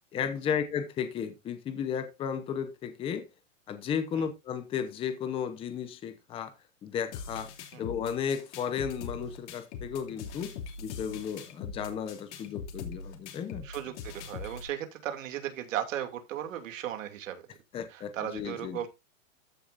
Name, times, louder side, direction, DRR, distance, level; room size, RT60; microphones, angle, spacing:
voice 1, 0.1-3.3 3.7-6.5 6.8-7.5 7.8-13.7 17.7-18.8, left 7 dB, 15° left, 0.9 m, -34 dB
sound 1, 7.1-14.7, left 5 dB, 60° left, 2.8 m, -42 dB
voice 2, 13.6-17.4 17.9-18.9, right 11 dB, 75° right, 2.7 m, -36 dB
14.5 x 6.6 x 2.6 m
supercardioid pair, 170°, 39 cm